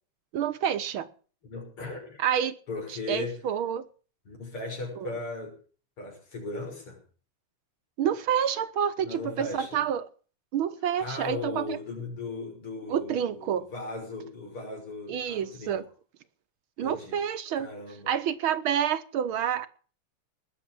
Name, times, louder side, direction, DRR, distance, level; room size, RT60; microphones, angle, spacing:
voice 1, 0.3-1.1 2.2-2.6 2.9-3.9 5.0-5.2 8.0-10.1 10.5-11.8 12.9-13.7 15.1-15.8 16.8-17.7 18.1-19.7, right 9 dB, 75° right, 1.9 m, -28 dB
voice 2, 1.5-2.2 2.7-3.3 4.3-5.5 6.0-7.0 9.0-9.8 11.0-15.8 16.8-17.2 17.6-18.1, left 3 dB, 80° left, 6.9 m, -37 dB
19.5 x 7.2 x 8.6 m
omnidirectional pair, 2.4 m